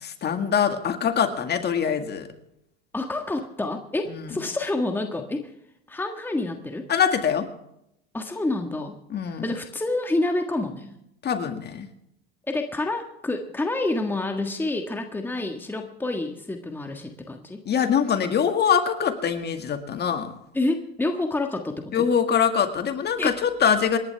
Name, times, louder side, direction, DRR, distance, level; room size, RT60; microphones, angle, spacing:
voice 1, 0.0-2.3 4.1-4.3 6.9-7.5 9.1-9.4 11.2-11.9 17.7-20.3 21.9-24.0, left 7 dB, 35° left, 7 dB, 1.9 m, -23 dB
voice 2, 2.9-5.5 5.9-6.9 8.1-9.0 9.2-10.9 12.5-17.6 20.5-22.1 23.2-23.3, left 2 dB, 5° left, 4 dB, 1.6 m, -28 dB
28.0 x 11.0 x 3.5 m, 0.80 s
supercardioid pair, 115°, 31 cm